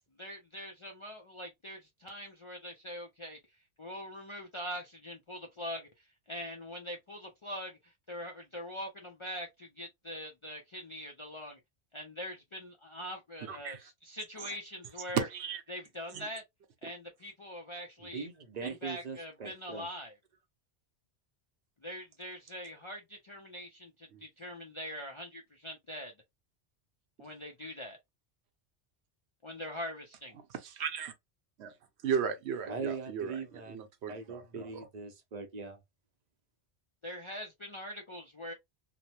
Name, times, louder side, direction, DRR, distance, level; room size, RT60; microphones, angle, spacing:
voice 1, 0.2-3.4 3.8-11.6 11.9-15.3 15.7-16.4 16.8-18.3 18.6-20.2 21.8-26.1 27.2-28.0 29.4-30.4 37.0-38.5, equal, 45° left, 0.4 m, -43 dB
voice 2, 13.5-13.8 15.1-15.6 16.1-16.3 24.1-24.2 30.6-31.1 31.6-31.7 32.0-33.4 33.7-34.9, right 7 dB, 75° right, 0.9 m, -35 dB
voice 3, 18.1-19.9 32.7-33.8 34.1-35.8, right 5 dB, 50° right, 0.6 m, -41 dB
2.9 x 2.0 x 2.8 m
omnidirectional pair, 1.1 m